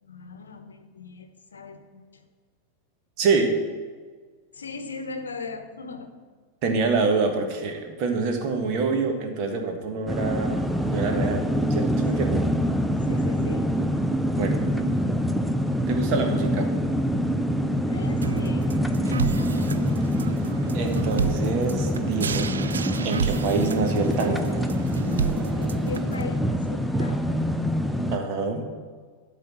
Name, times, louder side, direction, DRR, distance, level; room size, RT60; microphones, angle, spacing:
voice 1, 0.0-2.2 4.5-6.1 12.0-12.4 13.0-13.8 17.9-18.7 19.0-19.8 25.6-27.5, left 4 dB, 75° left, 8 dB, 0.8 m, -39 dB
voice 2, 3.2-3.5 6.6-10.7 10.9-12.5 14.3-14.6 15.9-16.7 20.7-22.5 23.0-24.5 28.1-28.7, right 4 dB, 45° right, 4 dB, 1.5 m, -26 dB
sound 1, 10.1-28.2, equal, ahead, 0.6 m, -25 dB
sound 2, 18.2-26.2, right 6 dB, 70° right, 0.3 m, -31 dB
12.0 x 4.1 x 7.7 m, 1.5 s
figure-of-eight pair, 90°, 0 cm